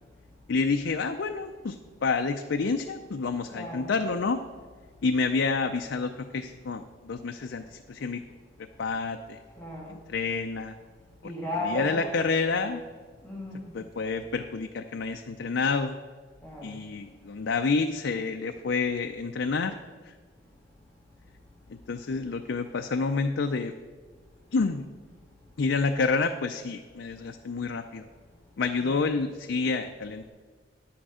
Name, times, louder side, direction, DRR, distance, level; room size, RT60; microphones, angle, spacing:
voice 1, 0.5-4.4 5.0-8.2 8.8-9.4 9.9-10.7 11.7-12.8 13.7-16.0 16.6-19.8 20.0-20.2 21.7-23.7 24.5-24.9 25.6-28.1 28.6-30.3, left 4 dB, 80° left, 6 dB, 0.5 m, -28 dB
voice 2, 3.5-3.9 9.6-10.0 11.2-12.4 13.2-13.7 16.4-16.7 28.8-28.9, left 1 dB, 10° left, -5 dB, 1.6 m, -35 dB
10.0 x 8.6 x 4.9 m, 1.5 s
head